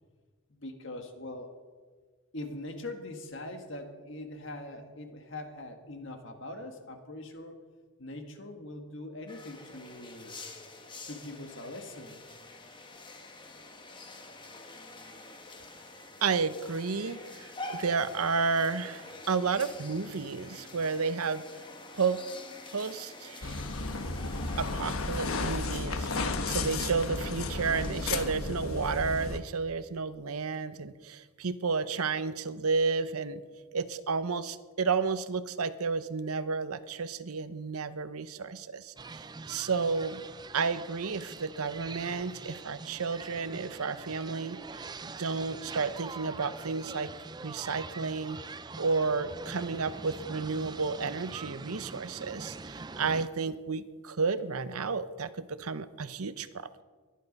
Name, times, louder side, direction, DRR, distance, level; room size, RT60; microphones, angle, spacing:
voice 1, 0.5-1.6 2.3-7.6 8.0-10.4 11.0-12.2, left 1 dB, 55° left, 5 dB, 1.8 m, -42 dB
sound 1, 9.3-28.2, left 2 dB, 20° left, 1.2 m, -47 dB
voice 2, 16.2-21.6 21.9-22.2 22.7-23.6 24.6-33.4 33.7-40.2 40.5-47.1 47.4-48.4 48.8-56.8, right 4 dB, 85° right, 13 dB, 0.8 m, -32 dB
sound 2, 23.4-29.4, left 3 dB, 75° left, 1.2 m, -33 dB
sound 3, 39.0-53.3, right 4 dB, 20° right, 0.4 m, -44 dB
23.0 x 10.5 x 5.4 m, 1.5 s
head